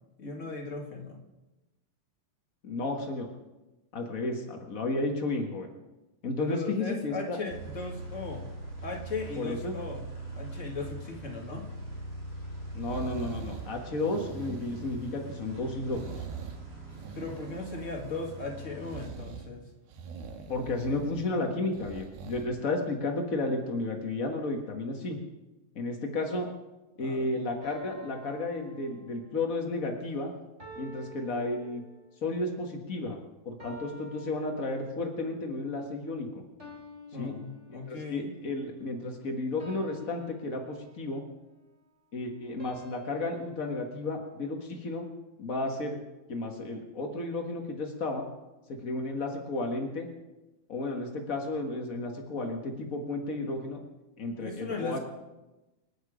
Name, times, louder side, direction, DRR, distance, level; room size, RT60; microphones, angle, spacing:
voice 1, 0.2-1.2 6.4-8.5 8.8-10.1 10.3-11.7 17.1-19.6 27.0-27.3 37.1-38.3 54.4-55.0, left 3 dB, 25° left, 1 dB, 1.7 m, -37 dB
voice 2, 2.6-3.3 3.9-5.7 6.2-7.4 9.4-9.7 12.7-16.2 20.5-25.2 25.7-26.5 27.0-30.3 30.8-31.8 32.2-33.2 33.4-36.3 37.2-37.4 37.7-41.2 42.1-45.1 45.4-46.0 46.3-48.2 48.7-50.1 50.7-53.8 54.2-55.0, left 2 dB, 80° left, 2 dB, 0.7 m, -33 dB
sound 1, 7.5-19.1, right 1 dB, 50° right, 6.9 m, -42 dB
sound 2, 12.8-13.7 14.0-15.4 15.9-16.6 16.9-18.2 18.8-19.5 19.9-21.3 21.7-22.5 22.9-23.0, right 6 dB, 80° right, 3.3 m, -43 dB
sound 3, 27.6-29.5 30.6-32.3 33.6-35.2 36.6-38.3 39.6-41.2 42.6-44.9, left 1 dB, 20° right, 3.0 m, -50 dB
27.0 x 9.4 x 5.0 m, 1.0 s
omnidirectional pair, 4.2 m